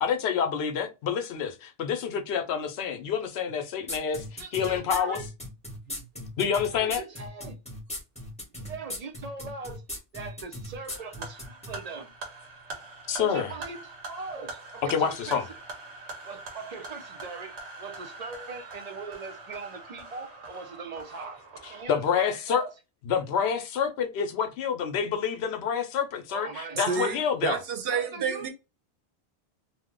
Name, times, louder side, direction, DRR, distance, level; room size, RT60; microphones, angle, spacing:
voice 1, 0.0-5.2 6.4-7.0 13.1-13.5 14.9-15.4 21.9-22.6 23.1-27.6, left 7 dB, 75° left, 0.8 m, -28 dB
sound 1, 3.9-11.7, left 1 dB, 5° left, 0.9 m, -38 dB
voice 2, 4.2-5.2 6.7-7.6 8.7-9.8 10.1-12.1 13.2-15.6 16.2-21.4 21.7-22.7 26.3-27.2 27.9-28.5, right 4 dB, 50° right, 0.5 m, -40 dB
sound 2, 10.9-21.8, right 3 dB, 85° right, 1.2 m, -43 dB
voice 3, 26.8-28.5, right 6 dB, 65° right, 0.9 m, -30 dB
2.8 x 2.0 x 3.6 m
omnidirectional pair, 1.1 m